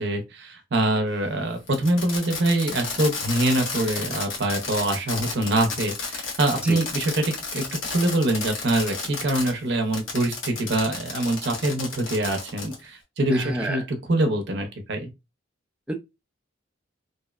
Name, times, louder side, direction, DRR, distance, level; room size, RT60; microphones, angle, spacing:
voice 1, 0.0-15.1, right 1 dB, 60° right, 0.6 m, -24 dB
Fireworks, 1.7-9.5 9.9-12.8, left 4 dB, 80° left, 0.8 m, -32 dB
voice 2, 13.3-13.8 15.9-16.0, right 1 dB, 5° right, 0.3 m, -29 dB
2.7 x 2.0 x 2.3 m
head